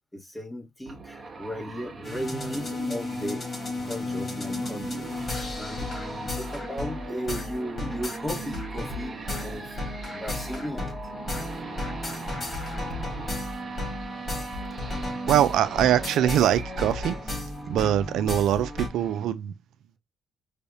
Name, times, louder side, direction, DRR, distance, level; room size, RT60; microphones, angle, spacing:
voice 1, 0.2-3.4 3.8-10.9 13.0-13.3, equal, 15° left, 2.4 m, -36 dB
sound 1, 0.9-19.2, right 4 dB, 35° right, 1.5 m, -40 dB
sound 2, 2.0-18.9, left 2 dB, 35° left, 3.4 m, -34 dB
voice 2, 15.3-17.4 17.7-19.5, right 11 dB, 80° right, 0.4 m, -23 dB
5.5 x 3.4 x 2.6 m
cardioid pair, 90°, 0 cm